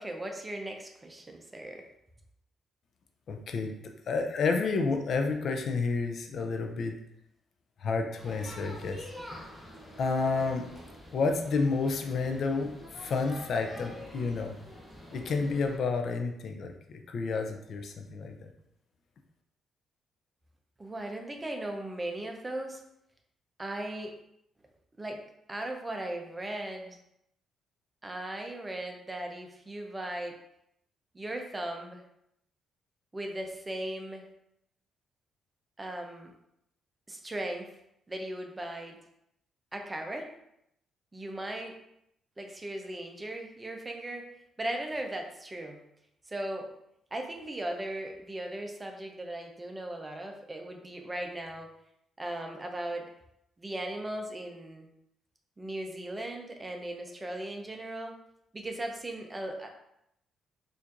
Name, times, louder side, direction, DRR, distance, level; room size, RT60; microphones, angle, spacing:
voice 1, 0.0-1.8 20.8-22.8 23.6-24.1 25.0-25.2 25.5-27.0 28.0-30.4 31.1-32.0 33.1-34.3 35.8-36.3 37.1-37.7 38.1-39.0 39.7-40.3 41.1-41.8 42.4-44.3 44.6-45.8 46.3-46.7 47.1-51.7 52.2-53.1 53.6-54.9 55.6-58.2 58.5-59.8, right 1 dB, 20° right, 3 dB, 0.6 m, -37 dB
voice 2, 3.3-3.7 4.1-7.0 7.8-9.0 10.0-10.6 11.1-14.5 15.1-18.5, left 4 dB, 60° left, 4 dB, 0.4 m, -30 dB
sound 1, 8.2-15.8, left 1 dB, ahead, 1.0 m, -46 dB
4.3 x 2.5 x 2.5 m, 0.77 s
cardioid pair, 90°, 0 cm